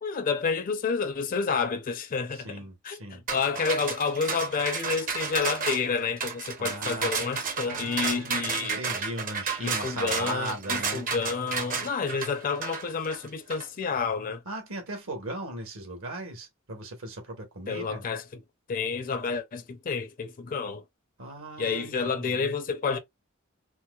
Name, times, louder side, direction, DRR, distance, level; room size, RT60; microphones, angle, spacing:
voice 1, 0.0-8.8 9.6-14.4 17.7-18.4 18.7-20.8 21.6-23.0, left 5 dB, 40° left, 0.5 m, -29 dB
voice 2, 2.3-3.2 6.6-7.2 7.6-11.0 14.4-18.0 21.2-22.6, right 1 dB, 65° right, 1.3 m, -38 dB
sound 1, 3.3-13.6, right 5 dB, 40° right, 0.8 m, -32 dB
4.4 x 2.0 x 2.3 m
head